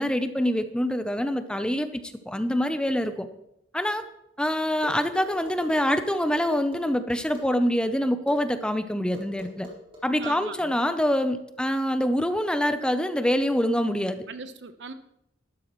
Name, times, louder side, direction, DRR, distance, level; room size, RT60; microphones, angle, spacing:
voice 1, 0.0-3.3 3.7-4.0 4.4-9.7 10.0-14.3, equal, 5° left, 9 dB, 0.6 m, -25 dB
sound 1, 4.8-6.8 7.3-7.5 8.3-8.4 9.1-10.3, left 1 dB, 30° right, 4.3 m, -42 dB
voice 2, 10.2-10.8 14.3-14.9, right 5 dB, 70° right, 10 dB, 0.9 m, -39 dB
13.5 x 12.5 x 3.1 m, 0.81 s
head